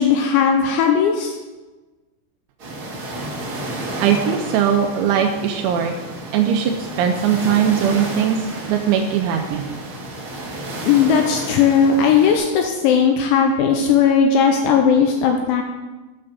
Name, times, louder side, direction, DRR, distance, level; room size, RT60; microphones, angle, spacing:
voice 1, 0.0-1.4 10.9-15.6, left 6 dB, 85° left, 3 dB, 2.8 m, -17 dB
sound 1, 2.6-12.4, right 1 dB, 55° right, 1.4 m, -31 dB
voice 2, 4.0-5.9 6.3-9.7, right 8 dB, 80° right, 4 dB, 2.8 m, -20 dB
8.8 x 5.5 x 6.5 m, 1.2 s
omnidirectional pair, 5.9 m